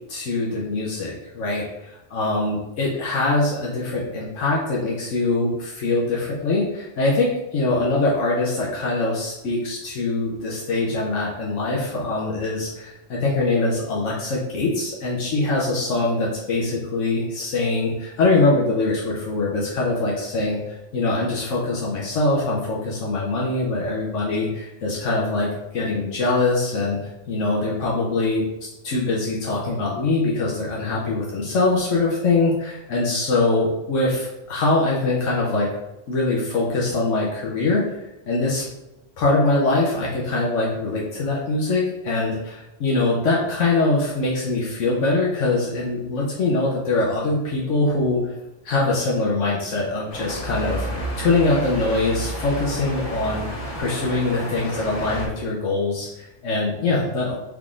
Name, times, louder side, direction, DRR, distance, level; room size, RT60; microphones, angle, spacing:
voice 1, 0.1-1.6 2.1-25.5 25.7-27.0 27.3-35.7 36.1-38.0 38.3-38.6 39.2-48.3 48.6-50.9 51.2-53.5 53.8-57.4, left 2 dB, 85° left, -4 dB, 1.1 m, -23 dB
sound 1, 50.1-55.3, right 1 dB, 35° left, 0.9 m, -31 dB
4.5 x 3.6 x 2.5 m, 0.95 s
omnidirectional pair, 1.3 m